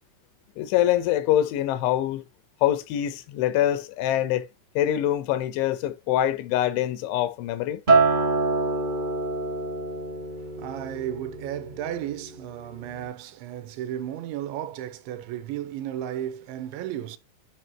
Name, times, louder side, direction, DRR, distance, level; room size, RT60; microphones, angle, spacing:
voice 1, 0.6-2.2 2.6-4.5 4.8-7.8, left 12 dB, 80° left, 3.2 m, -24 dB
Acoustic guitar, 7.9-12.3 12.7-13.1, right 3 dB, 65° right, 0.5 m, -26 dB
voice 2, 10.6-17.2, right 11 dB, 80° right, 3.1 m, -34 dB
11.0 x 5.2 x 2.9 m
omnidirectional pair, 5.4 m